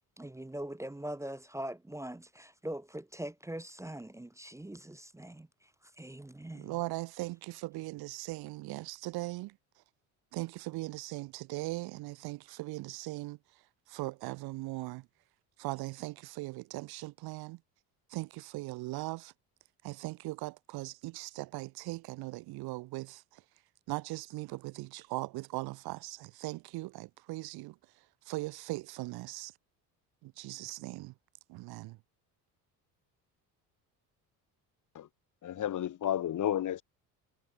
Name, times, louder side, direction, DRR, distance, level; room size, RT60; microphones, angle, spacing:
voice 1, 0.2-5.7 6.0-6.7, right 1 dB, 5° right, 0.6 m, -42 dB
voice 2, 6.6-9.6 10.3-13.4 13.9-15.1 15.6-17.6 18.1-19.3 19.8-23.4 23.9-27.8 28.3-29.5 30.2-31.1 31.5-32.0, right 20 dB, 55° right, 0.5 m, -39 dB
voice 3, 35.4-36.8, left 11 dB, 45° left, 1.0 m, -32 dB
hypercardioid pair, 65°, 44 cm